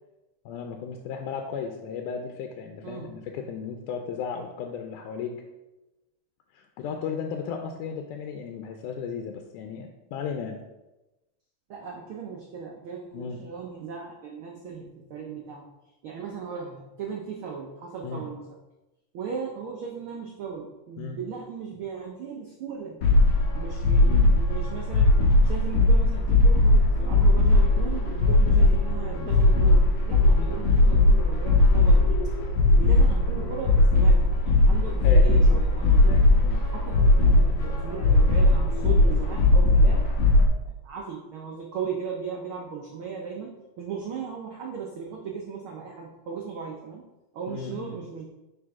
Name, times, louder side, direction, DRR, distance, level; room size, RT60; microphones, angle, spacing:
voice 1, 0.5-5.4 6.5-10.6 13.1-13.4 18.0-18.2 21.0-21.2 24.0-24.3 35.0-35.6 36.1-36.6 47.5-48.0, left 6 dB, 90° left, 4 dB, 2.2 m, -35 dB
voice 2, 11.7-15.7 16.0-18.4 19.1-23.0 23.5-32.2 32.8-36.1 36.7-40.0 40.7-47.0 47.3-48.2, right 6 dB, 90° right, -1 dB, 1.1 m, -37 dB
sound 1, 23.0-40.5, left 2 dB, 70° left, 1.6 m, -19 dB
10.0 x 4.5 x 3.6 m, 1.0 s
omnidirectional pair, 3.5 m